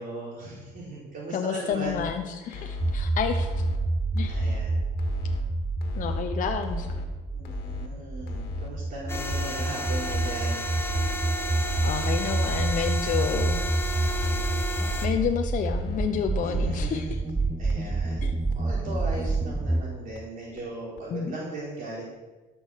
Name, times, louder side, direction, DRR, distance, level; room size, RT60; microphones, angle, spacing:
voice 1, 0.0-2.0 2.4-2.7 4.2-4.8 7.3-10.7 11.2-11.5 16.4-17.2 17.6-18.3 18.5-22.0, right 2 dB, 55° right, -4 dB, 3.9 m, -38 dB
voice 2, 1.3-3.5 4.1-4.5 5.9-6.9 11.8-13.6 15.0-17.2 18.2-18.3 21.1-21.4, left 7 dB, 50° left, 4 dB, 0.9 m, -30 dB
sound 1, 1.7-2.1 2.5-3.0 3.3-3.8 4.2-4.6 5.0-5.4 5.8-6.2 6.6-7.1 7.5-7.9 8.3-8.7 9.1-9.5 9.9-10.3 10.7-11.2 11.6-12.0 12.4-12.8 13.2-13.6 14.0-14.4 14.8-15.3 15.7-16.1 16.5-16.9 17.3-17.4 17.7-17.8 18.1-18.2 18.5-18.6 18.9-19.0 19.3-19.4 19.7-19.8 20.2-20.3 20.6-20.7 21.0-21.1, left 5 dB, 70° left, 1.9 m, -36 dB
sound 2, 2.8-19.8, right 2 dB, 10° right, 0.5 m, -28 dB
sound 3, 9.1-15.1, left 1 dB, 15° left, 1.4 m, -33 dB
13.0 x 6.3 x 6.5 m, 1.2 s
cardioid pair, 110°, 17 cm